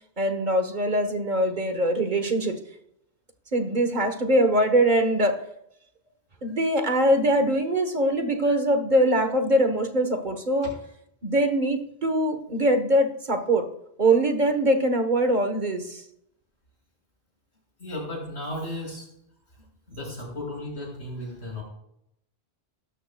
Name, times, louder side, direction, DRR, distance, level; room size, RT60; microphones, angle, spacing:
voice 1, 0.2-2.6 3.5-5.4 6.4-10.7 11.2-13.7 14.0-16.0, right 1 dB, 45° right, 6 dB, 1.3 m, -22 dB
voice 2, 17.8-19.1 19.9-21.6, left 1 dB, 80° left, -2 dB, 6.0 m, -34 dB
17.0 x 13.5 x 2.3 m, 0.76 s
omnidirectional pair, 1.1 m